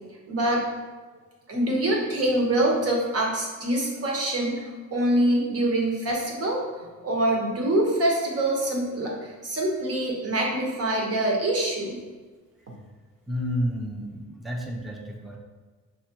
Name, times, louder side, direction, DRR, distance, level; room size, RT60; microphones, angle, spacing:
voice 1, 0.3-0.6 1.5-12.0, right 1 dB, 50° right, -1 dB, 1.3 m, -25 dB
voice 2, 13.3-15.4, equal, ahead, 1 dB, 0.5 m, -30 dB
5.7 x 3.1 x 3.0 m, 1.4 s
cardioid pair, 90°, 30 cm